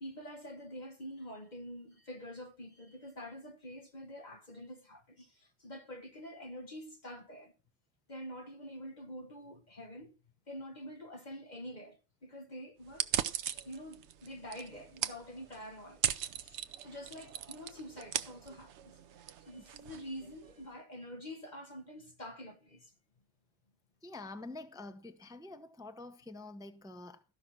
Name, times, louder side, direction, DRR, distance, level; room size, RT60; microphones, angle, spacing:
voice 1, 0.0-7.5 8.1-10.1 10.5-13.1 13.5-22.9, equal, 35° left, 1.4 m, -47 dB
sound 1, 12.9-20.6, right 9 dB, 65° right, 0.9 m, -39 dB
voice 2, 24.0-27.2, left 2 dB, 5° right, 0.7 m, -47 dB
13.5 x 5.8 x 6.2 m
omnidirectional pair, 1.4 m